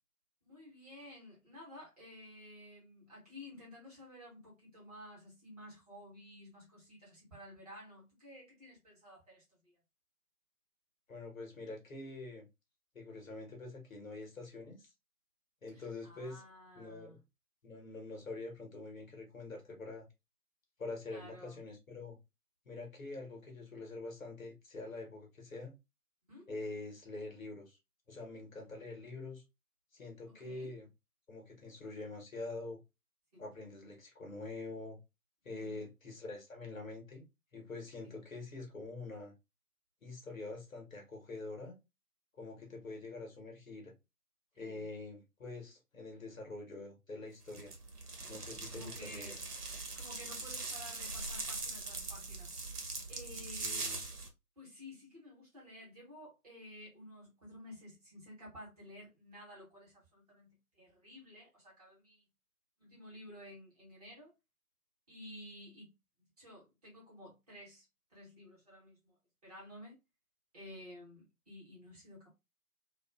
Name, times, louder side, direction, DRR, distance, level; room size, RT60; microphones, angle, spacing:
voice 1, 0.4-9.8 15.7-17.2 21.1-21.6 26.3-26.5 30.3-30.7 33.3-33.4 35.5-35.8 38.0-38.2 44.5-44.8 48.6-49.4 49.9-52.6 53.1-53.9 54.6-62.2 62.8-64.3 65.1-65.9 66.4-69.2 69.4-69.9 70.5-72.3, left 1 dB, 25° right, 1.1 m, -53 dB
voice 2, 11.1-12.5 12.9-14.9 15.6-16.4 16.8-17.2 17.6-20.1 20.8-22.2 22.6-25.8 26.5-27.8 28.1-29.4 29.9-30.9 31.3-32.8 33.4-35.0 35.4-37.2 37.5-39.3 40.0-41.8 42.4-43.9 44.6-47.7 48.3-49.3 53.6-54.0, left 3 dB, 55° left, 1.0 m, -45 dB
sound 1, 47.5-54.3, right 3 dB, 70° right, 1.0 m, -41 dB
2.4 x 2.4 x 2.2 m
figure-of-eight pair, 150°, 47 cm